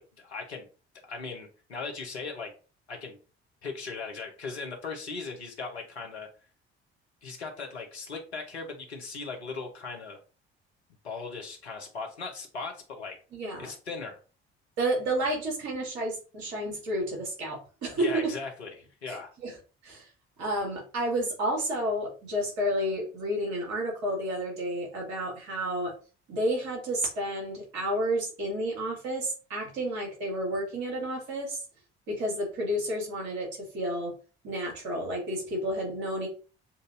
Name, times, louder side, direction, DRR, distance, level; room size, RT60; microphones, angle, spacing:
voice 1, 0.2-0.7 1.0-2.5 2.9-3.2 3.6-6.3 7.2-10.2 11.0-13.2 13.6-14.2 18.0-19.3, left 4 dB, 85° left, 2 dB, 0.9 m, -38 dB
voice 2, 13.3-13.7 14.8-18.3 19.1-19.2 19.4-19.6 19.8-20.1 20.4-25.9 26.3-31.6 32.1-34.1 34.4-36.3, right 1 dB, 60° right, -2 dB, 2.1 m, -31 dB
7.0 x 2.6 x 2.5 m, 0.35 s
figure-of-eight pair, 45°, 32 cm